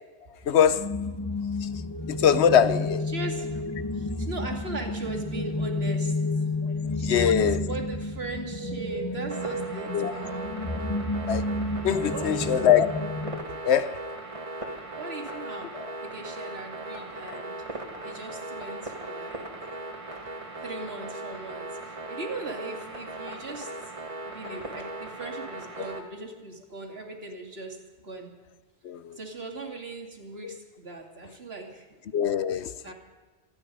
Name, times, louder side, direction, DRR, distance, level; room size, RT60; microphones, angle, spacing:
voice 1, 0.4-0.9 1.6-1.7 2.1-3.0 6.6-7.6 9.9-10.1 11.3-11.4 11.8-12.9 13.6-14.0 28.8-29.2 30.4-30.6 32.1-32.9, left 8 dB, 75° left, 1.0 m, -23 dB
sound 1, 0.7-13.4, left 2 dB, 20° left, 1.2 m, -31 dB
voice 2, 1.9-2.3 3.1-6.5 6.9-10.5 12.1-12.5 14.6-17.6 18.0-19.5 20.6-23.7 24.3-28.3 29.1-32.0 32.8-32.9, right 3 dB, 65° right, 2.7 m, -39 dB
sound 2, 9.3-26.0, right 2 dB, 30° right, 1.7 m, -38 dB
26.5 x 9.8 x 5.4 m
omnidirectional pair, 1.1 m